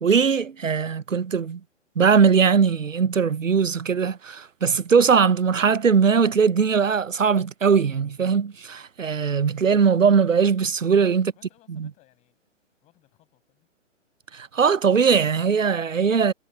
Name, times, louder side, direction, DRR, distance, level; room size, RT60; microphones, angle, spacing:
voice 1, 0.0-1.6 2.0-11.3 11.8-11.9 14.3-16.3, right 6 dB, 90° right, 0.6 m, -20 dB
voice 2, 11.2-12.4 12.8-13.7, left 17 dB, 20° left, 8.0 m, -61 dB
figure-of-eight pair, 130°, 37 cm